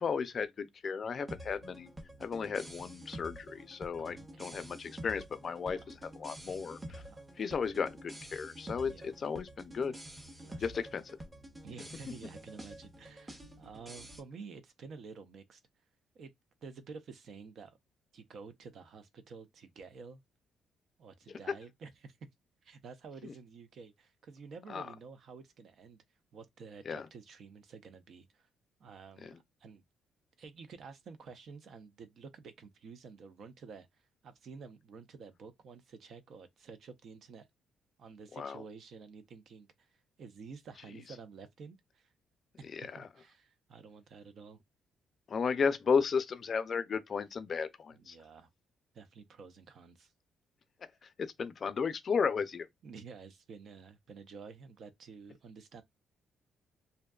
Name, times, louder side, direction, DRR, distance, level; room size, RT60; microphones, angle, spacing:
voice 1, 0.0-1.9 2.2-7.0 7.4-9.9 10.6-11.2 23.2-23.3 24.7-24.9 26.9-27.1 29.2-29.3 38.4-38.6 42.7-43.1 45.3-48.2 51.0-52.7, left 6 dB, 45° left, 0.4 m, -34 dB
sound 1, 1.3-14.2, right 1 dB, 20° right, 0.8 m, -48 dB
voice 2, 3.9-4.5 5.6-5.9 6.9-7.2 8.9-9.1 10.4-10.9 11.6-15.6 16.1-16.3 16.6-17.8 18.1-20.2 21.0-22.2 22.6-26.0 26.3-28.5 28.8-29.8 30.4-37.5 38.0-42.1 42.6-44.6 47.9-48.5 48.9-50.1 52.8-55.8, right 5 dB, 65° right, 0.5 m, -51 dB
2.6 x 2.2 x 2.3 m
cardioid pair, 90°, 0 cm